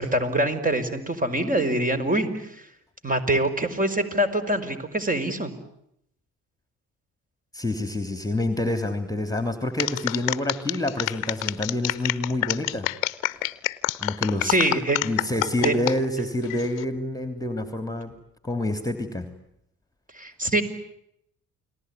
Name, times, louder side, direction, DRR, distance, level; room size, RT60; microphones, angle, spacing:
voice 1, 0.0-2.6 3.0-5.5 14.4-15.0 15.6-15.7 20.1-20.6, right 1 dB, 20° right, 8 dB, 5.3 m, -24 dB
voice 2, 7.5-12.9 14.0-14.6 15.0-18.1 18.4-19.3, left 1 dB, 10° left, 8 dB, 3.1 m, -27 dB
sound 1, 9.8-16.0 16.4-16.8, left 18 dB, 90° left, 1.0 m, -27 dB
29.5 x 20.5 x 9.7 m, 0.77 s
hypercardioid pair, 60°, 40 cm